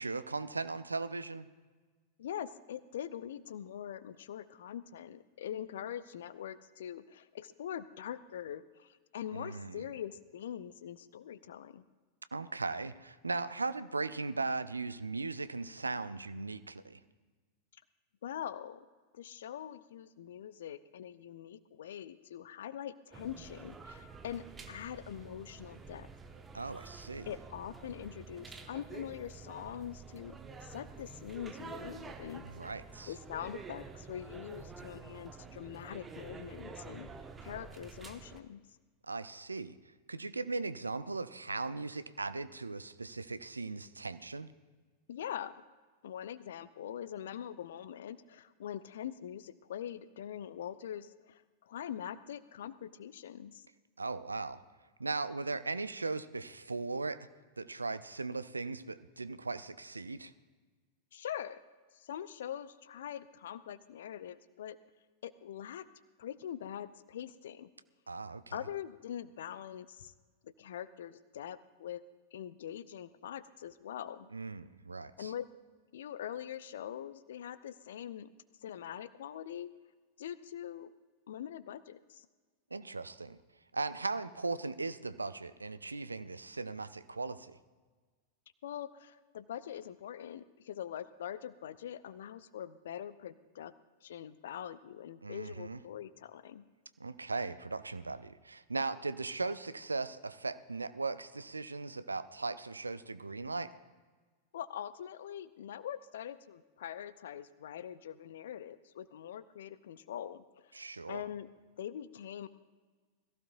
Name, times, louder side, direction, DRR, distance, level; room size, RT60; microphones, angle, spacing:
voice 1, 0.0-1.5 9.3-9.8 12.3-17.0 26.5-27.3 32.4-33.1 39.0-39.7 40.1-44.5 54.0-54.6 55.0-57.3 57.6-60.3 68.1-68.6 74.3-75.3 82.7-83.4 83.7-87.6 95.2-95.8 97.0-103.7 110.7-111.2, right 3 dB, 80° right, 14 dB, 0.5 m, -38 dB
voice 2, 2.2-11.8 18.2-18.9 19.1-26.1 26.6-26.7 27.3-32.5 33.1-37.1 37.4-38.6 45.1-45.5 46.0-53.7 61.1-61.6 61.9-64.8 65.2-65.9 66.2-67.7 68.5-70.1 70.4-72.0 72.3-74.3 75.2-75.5 75.9-78.3 78.6-79.7 80.2-80.9 81.3-82.3 88.6-93.7 94.0-96.6 104.5-111.5 111.8-112.5, left 10 dB, 60° left, 16 dB, 0.6 m, -43 dB
sound 1, 23.1-38.4, right 5 dB, 15° right, 1.1 m, -49 dB
21.5 x 15.0 x 2.6 m, 1.4 s
figure-of-eight pair, 90°, 0 cm